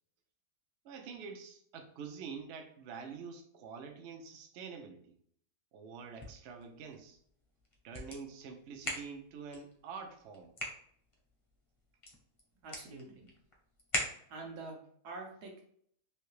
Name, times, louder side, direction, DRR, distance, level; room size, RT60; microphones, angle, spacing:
voice 1, 0.8-5.0 5.7-7.2 7.8-10.6, right 5 dB, 65° right, 5 dB, 0.7 m, -46 dB
sound 1, 5.9-14.6, left 1 dB, 30° left, 0.6 m, -44 dB
voice 2, 12.6-13.3 14.3-14.8 15.0-15.7, right 3 dB, 85° right, 1 dB, 1.4 m, -46 dB
3.3 x 2.8 x 3.1 m, 0.64 s
omnidirectional pair, 1.7 m